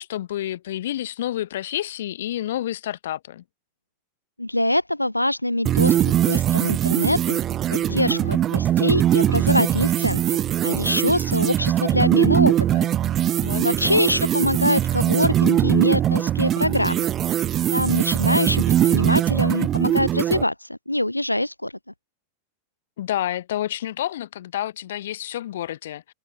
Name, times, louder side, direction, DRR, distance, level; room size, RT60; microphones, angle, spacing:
voice 1, 0.0-3.4 7.9-8.4 13.4-14.0 23.0-26.1, left 12 dB, 60° left, 1.3 m, -29 dB
voice 2, 4.4-7.4 7.7-12.9 13.6-17.1 17.7-21.7, left 1 dB, 85° left, 0.4 m, -24 dB
sound 1, 5.7-20.4, right 11 dB, 30° right, 0.4 m, -21 dB
figure-of-eight pair, 90°, 0 cm